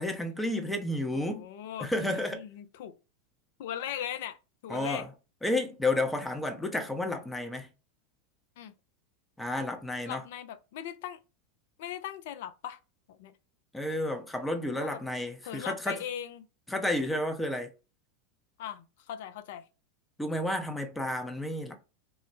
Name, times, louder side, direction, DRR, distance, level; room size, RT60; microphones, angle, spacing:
voice 1, 0.0-1.4 1.8-2.4 4.7-5.1 5.4-7.7 9.4-10.2 13.7-16.0 16.7-17.7 20.2-21.8, left 1 dB, 5° left, 0.5 m, -31 dB
voice 2, 1.1-3.0 3.6-4.4 4.6-5.1 8.6-8.7 10.1-11.2 11.8-12.8 13.1-13.3 14.7-15.0 15.4-16.5 18.6-19.6, left 10 dB, 65° left, 0.3 m, -39 dB
2.2 x 2.0 x 3.0 m
hypercardioid pair, 90°, 0 cm